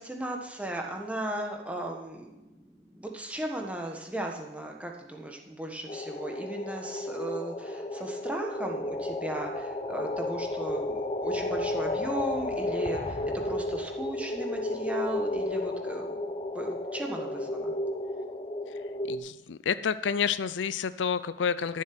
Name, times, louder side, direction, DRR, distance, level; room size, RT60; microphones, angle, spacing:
voice 1, 0.0-13.2 13.4-17.7, right 1 dB, 5° right, 1 dB, 1.4 m, -37 dB
sound 1, 5.9-19.2, left 1 dB, 30° left, 0.7 m, -33 dB
voice 2, 19.1-21.8, left 6 dB, 80° left, 14 dB, 0.5 m, -29 dB
13.5 x 7.5 x 6.1 m, 1.0 s
head